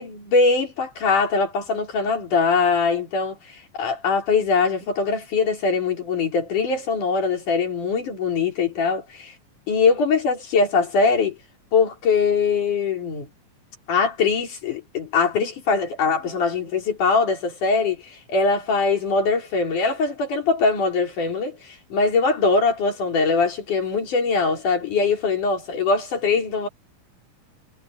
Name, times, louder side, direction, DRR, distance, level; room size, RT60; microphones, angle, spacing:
voice 1, 0.0-9.3 9.7-11.4 11.7-13.3 13.9-26.7, left 4 dB, 60° left, 5.6 m, -22 dB
omnidirectional pair, 4.2 m